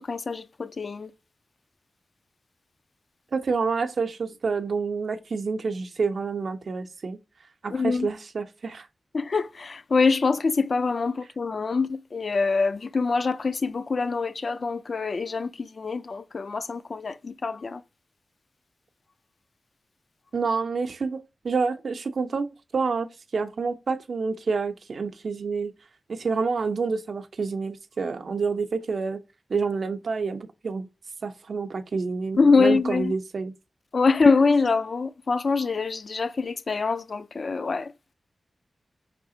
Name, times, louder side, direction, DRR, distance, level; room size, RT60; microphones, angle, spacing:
voice 1, 0.1-1.1 7.7-8.1 9.1-17.8 32.4-33.1 33.9-37.9, left 4 dB, 60° left, 0.4 m, -24 dB
voice 2, 3.3-7.2 7.6-8.9 20.3-25.7 26.1-29.2 29.5-30.9 31.2-33.5, right 4 dB, 70° right, 0.6 m, -28 dB
4.8 x 3.3 x 2.7 m
cardioid pair, 60°, 0 cm